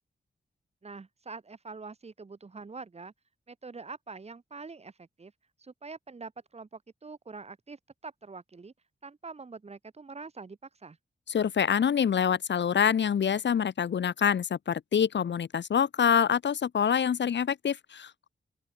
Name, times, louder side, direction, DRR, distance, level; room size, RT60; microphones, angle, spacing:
voice 1, 0.8-3.1 3.5-5.3 5.6-8.7 9.0-11.0, right 4 dB, 35° right, 2.6 m, -45 dB
voice 2, 11.3-18.3, left 8 dB, 75° left, 1.1 m, -26 dB
open air
wide cardioid pair, 160°, 19 cm